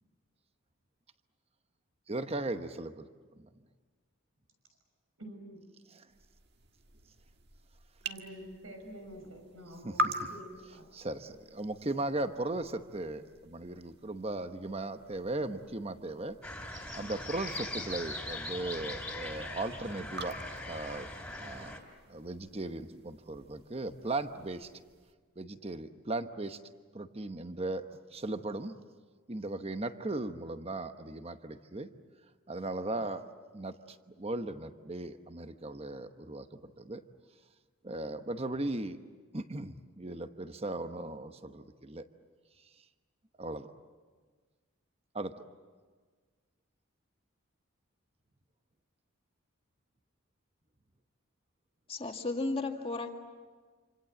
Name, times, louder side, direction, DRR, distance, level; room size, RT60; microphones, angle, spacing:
voice 1, 2.1-3.1 3.4-3.5 5.9-6.1 9.8-9.9 10.9-16.4 16.9-20.4 20.7-21.1 21.4-21.7 22.1-24.7 25.4-26.6 26.9-27.8 28.1-28.7 29.3-31.9 32.5-33.2 33.5-37.0 37.8-39.0 39.3-42.0 43.4-43.7 45.1-45.4, right 2 dB, 30° right, 9 dB, 1.0 m, -37 dB
voice 2, 5.2-5.6 8.0-11.1, right 1 dB, 85° right, 4 dB, 6.4 m, -48 dB
sound 1, 6.1-25.1, right 1 dB, 50° right, 1.6 m, -45 dB
sound 2, 16.4-21.8, left 2 dB, 5° left, 3.3 m, -40 dB
voice 3, 51.9-53.1, left 3 dB, 25° left, 3 dB, 2.0 m, -34 dB
27.5 x 26.5 x 7.9 m, 1.5 s
head